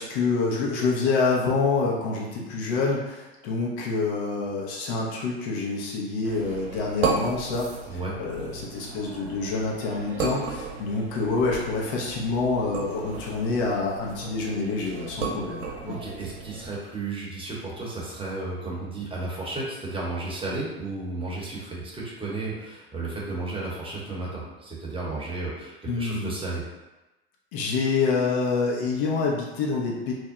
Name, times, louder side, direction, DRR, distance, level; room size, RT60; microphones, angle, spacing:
voice 1, 0.0-16.0 25.9-26.3 27.5-30.1, left 4 dB, 55° left, -3 dB, 0.9 m, -27 dB
sound 1, 6.2-16.7, right 4 dB, 70° right, 0.8 m, -34 dB
voice 2, 15.9-26.6, right 2 dB, 15° right, -5 dB, 0.8 m, -33 dB
2.6 x 2.1 x 3.6 m, 1.1 s
hypercardioid pair, 90°, 32 cm